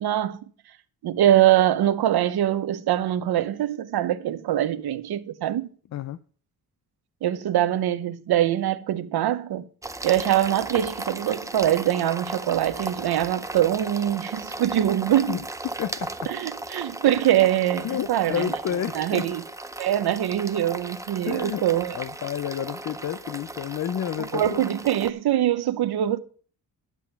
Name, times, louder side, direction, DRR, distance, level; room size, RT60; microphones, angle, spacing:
voice 1, 0.0-0.4 1.0-5.7 7.2-9.6 10.0-15.4 16.3-18.5 18.9-19.4 19.8-21.9 24.2-26.2, right 12 dB, 75° right, 0.9 m, -23 dB
sound 1, 9.8-25.1, right 2 dB, 10° right, 0.6 m, -36 dB
voice 2, 15.3-16.3 17.8-19.3 21.3-21.7 21.9-24.7, left 10 dB, 45° left, 0.5 m, -30 dB
11.0 x 7.1 x 5.8 m
cardioid pair, 120°, 38 cm